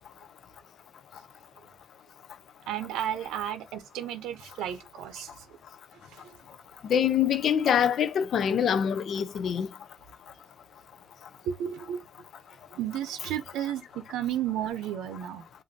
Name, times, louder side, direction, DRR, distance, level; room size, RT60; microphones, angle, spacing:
voice 1, 2.7-5.5 6.1-6.6 11.4-12.0 12.7-15.5, right 10 dB, 75° right, 0.7 m, -33 dB
voice 2, 6.9-9.7, left 8 dB, 40° left, 0.5 m, -24 dB
7.6 x 2.6 x 2.7 m
cardioid pair, 175°, 0 cm